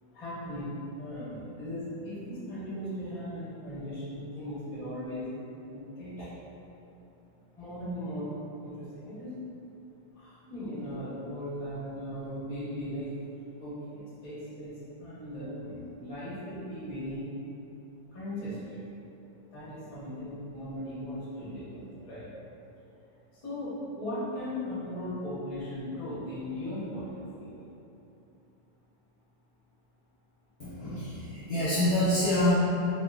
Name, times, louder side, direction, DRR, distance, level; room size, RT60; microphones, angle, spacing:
voice 1, 0.1-5.3 5.7-6.3 7.6-8.3 8.6-9.4 10.1-13.1 13.6-14.7 15.0-17.2 18.1-18.8 19.5-22.2 23.3-27.6, equal, 30° left, -11 dB, 0.6 m, -38 dB
voice 2, 30.6-32.5, left 1 dB, 70° left, -11 dB, 0.9 m, -26 dB
2.9 x 2.5 x 2.3 m, 2.7 s
omnidirectional pair, 2.0 m